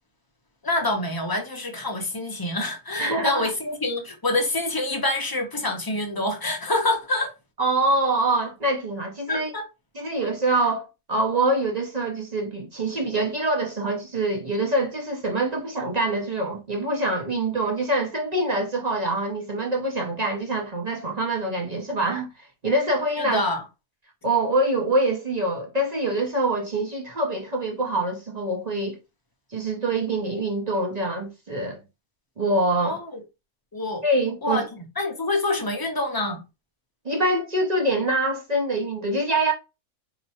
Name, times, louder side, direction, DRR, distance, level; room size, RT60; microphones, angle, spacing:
voice 1, 0.6-7.3 9.3-9.6 23.2-23.6 32.8-33.2 33.7-34.0 34.4-36.4, left 2 dB, 20° left, 0.6 m, -26 dB
voice 2, 3.0-3.5 7.6-9.5 9.9-23.4 24.2-29.0 29.5-31.8 32.4-33.0 34.0-34.6 37.0-39.5, right 2 dB, 40° right, 0.6 m, -25 dB
4.2 x 2.9 x 2.8 m
omnidirectional pair, 1.5 m